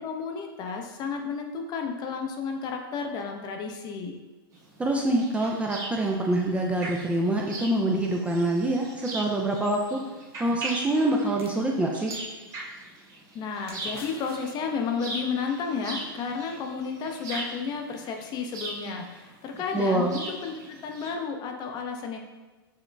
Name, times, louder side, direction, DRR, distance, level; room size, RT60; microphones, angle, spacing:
voice 1, 0.0-4.2 13.3-22.2, left 5 dB, 35° left, 3 dB, 0.6 m, -32 dB
sound 1, 4.5-21.1, right 2 dB, 25° right, 1.0 m, -40 dB
voice 2, 4.8-10.0 10.4-12.1 19.7-20.2, right 1 dB, 10° right, -1 dB, 0.4 m, -25 dB
sound 2, 11.4-13.0 13.7-14.2, right 3 dB, 90° right, 0.7 m, -48 dB
sound 3, 13.5-15.1, left 4 dB, 75° left, 0.7 m, -47 dB
6.3 x 2.9 x 2.3 m, 1.2 s
hypercardioid pair, 115°, 13 cm